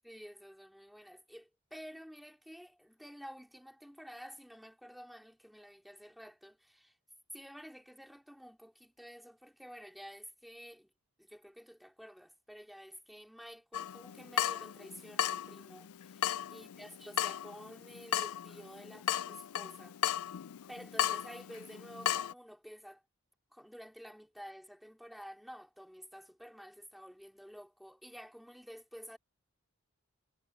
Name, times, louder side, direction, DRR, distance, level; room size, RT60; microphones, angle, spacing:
voice 1, 0.0-7.0 7.3-10.9 11.2-20.0 20.7-23.0 23.5-29.2, equal, ahead, 3.7 m, -51 dB
Water tap faucet / Drip, 13.7-22.3, left 11 dB, 80° left, 0.4 m, -36 dB
head